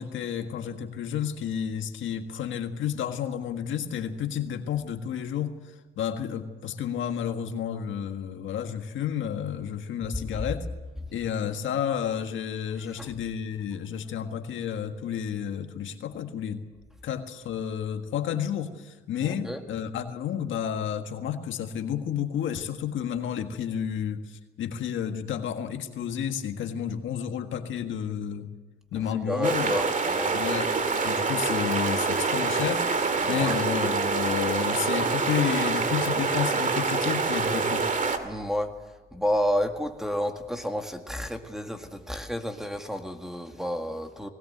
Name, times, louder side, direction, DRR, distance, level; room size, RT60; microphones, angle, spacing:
voice 1, 0.0-5.6 6.0-10.7 11.1-16.6 17.0-28.5 28.9-29.8 30.3-32.9 33.3-37.9, left 8 dB, 75° left, 6 dB, 1.7 m, -31 dB
voice 2, 19.2-19.6 29.0-30.4 33.2-33.6 38.2-38.7 39.1-44.3, equal, ahead, 5 dB, 1.9 m, -31 dB
sound 1, 29.4-38.2, right 4 dB, 40° right, 2.2 m, -26 dB
20.0 x 17.5 x 7.9 m, 1.2 s
cardioid pair, 90°, 20 cm